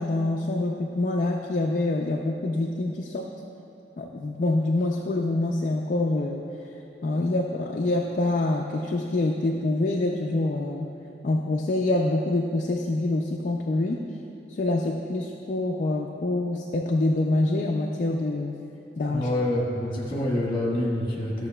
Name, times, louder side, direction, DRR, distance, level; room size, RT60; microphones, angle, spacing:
voice 1, 0.0-3.3 4.0-6.5 7.0-10.9 11.2-14.0 14.5-18.6 19.0-19.3, left 2 dB, 45° left, 1 dB, 0.4 m, -26 dB
voice 2, 19.1-21.5, left 1 dB, 30° left, -3 dB, 1.3 m, -26 dB
13.0 x 6.5 x 2.2 m, 2.9 s
head